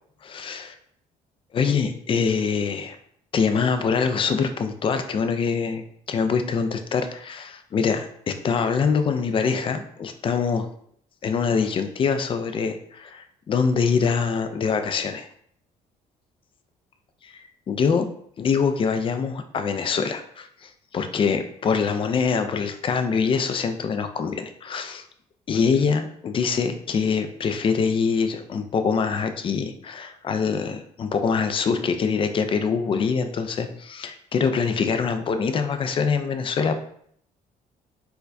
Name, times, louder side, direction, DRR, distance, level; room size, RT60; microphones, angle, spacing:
voice 1, 0.2-0.7 1.5-3.0 3.3-10.7 11.2-15.3 17.2-18.1 18.4-25.0 25.5-36.7, left 5 dB, 35° left, 8 dB, 0.4 m, -24 dB
4.4 x 2.2 x 2.6 m, 0.65 s
cardioid pair, 100°, 15 cm